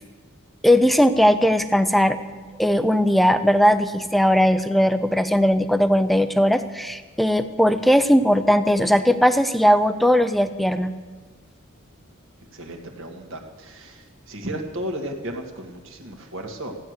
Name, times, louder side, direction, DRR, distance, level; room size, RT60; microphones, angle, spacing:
voice 1, 0.6-2.2 2.6-10.9, equal, ahead, 11 dB, 0.5 m, -18 dB
voice 2, 12.5-16.8, right 1 dB, 65° right, 3 dB, 1.9 m, -34 dB
15.0 x 9.6 x 6.5 m, 1.5 s
head